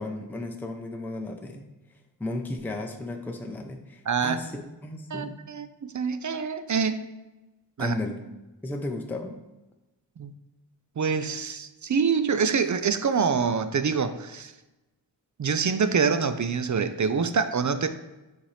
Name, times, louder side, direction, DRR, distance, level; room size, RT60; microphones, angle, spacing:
voice 1, 0.0-1.6 2.2-5.3 7.8-8.3 8.6-9.5, left 2 dB, 5° left, 3 dB, 0.6 m, -34 dB
voice 2, 4.1-4.4 5.1-7.0 7.8-7.9 10.2-10.3 11.0-14.5 15.4-17.9, right 5 dB, 45° right, 10 dB, 0.5 m, -26 dB
7.6 x 4.2 x 3.3 m, 1.0 s
cardioid pair, 50°, 44 cm